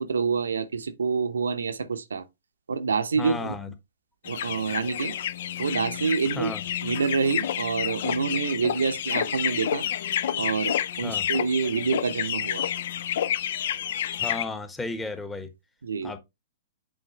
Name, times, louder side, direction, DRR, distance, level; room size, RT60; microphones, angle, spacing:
voice 1, 0.0-2.3 2.7-3.8 4.3-5.2 5.6-6.5 6.8-9.9 10.4-12.6 15.8-16.1, right 5 dB, 80° right, 0.7 m, -27 dB
voice 2, 3.2-3.7 6.4-6.6 11.0-11.3 14.2-15.5 16.0-16.2, left 3 dB, 10° left, 1.2 m, -33 dB
sound 1, 4.2-14.4, left 10 dB, 60° left, 0.5 m, -29 dB
7.7 x 4.7 x 3.0 m
hypercardioid pair, 115°, 0 cm